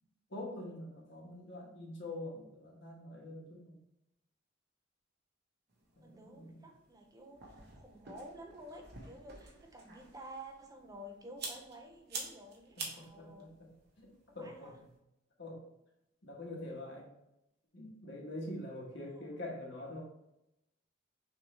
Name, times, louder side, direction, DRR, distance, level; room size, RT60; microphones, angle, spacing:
voice 1, 0.3-3.8 6.0-6.7 12.8-13.7 14.0-14.1 14.3-14.9 15.4-15.7 16.2-17.1 17.7-20.0, left 1 dB, 65° left, -2 dB, 1.3 m, -45 dB
sound 1, 5.7-15.0, right 3 dB, 60° right, 1.0 m, -49 dB
voice 2, 6.0-7.5 7.7-13.6 14.3-14.8 19.1-19.4, right 1 dB, 20° right, 3 dB, 0.5 m, -51 dB
6.1 x 2.7 x 3.2 m, 0.86 s
head